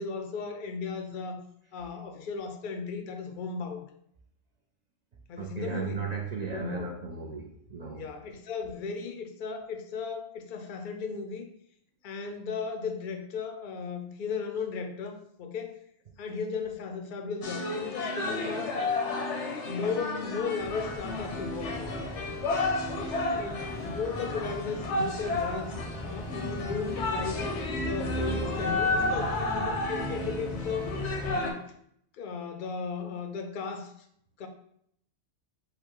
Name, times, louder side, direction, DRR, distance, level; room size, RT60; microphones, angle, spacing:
voice 1, 0.0-1.4 1.7-3.8 5.3-6.0 6.5-6.9 7.9-11.5 12.0-15.8 16.2-18.8 19.7-22.0 23.4-27.4 27.8-31.7 32.1-33.9 34.4-34.5, left 5 dB, 55° left, 6 dB, 0.6 m, -36 dB
voice 2, 5.4-8.1, right 5 dB, 50° right, 0 dB, 0.5 m, -36 dB
sound 1, 17.4-31.5, left 2 dB, 80° left, 1.0 m, -32 dB
sound 2, 20.6-31.4, left 2 dB, ahead, 0.8 m, -38 dB
5.0 x 2.2 x 4.6 m, 0.70 s
omnidirectional pair, 1.2 m